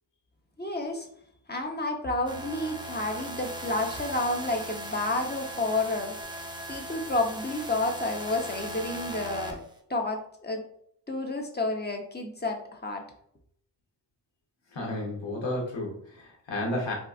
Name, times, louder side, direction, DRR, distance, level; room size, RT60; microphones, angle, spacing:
voice 1, 0.6-1.1 1.5-6.2 6.7-9.6 9.9-10.6 11.1-13.1, left 2 dB, 20° left, 3 dB, 0.8 m, -30 dB
sound 1, 2.3-9.8, equal, 10° right, 0.6 m, -38 dB
voice 2, 14.7-16.9, left 1 dB, 75° left, -1 dB, 1.2 m, -32 dB
3.8 x 2.4 x 2.4 m, 0.67 s
cardioid pair, 45°, 45 cm